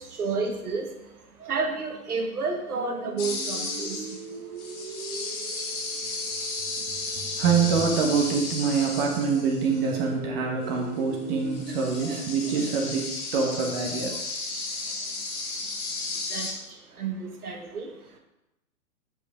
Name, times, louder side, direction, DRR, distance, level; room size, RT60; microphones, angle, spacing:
voice 1, 0.0-4.5 5.4-6.1 6.4-6.5 7.3-7.4 12.1-12.2 14.8-15.2 16.1-18.2, right 4 dB, 75° right, 3 dB, 1.5 m, -32 dB
sound 1, 2.7-12.7, right 4 dB, 20° right, 0.5 m, -40 dB
sound 2, 3.2-9.9 11.0-11.1 11.3-16.5, left 3 dB, 35° left, 2.5 m, -34 dB
voice 2, 7.4-14.1 16.7-16.8, right 5 dB, 40° right, 0 dB, 1.4 m, -25 dB
9.8 x 5.1 x 3.6 m, 0.93 s
figure-of-eight pair, 110°, 45 cm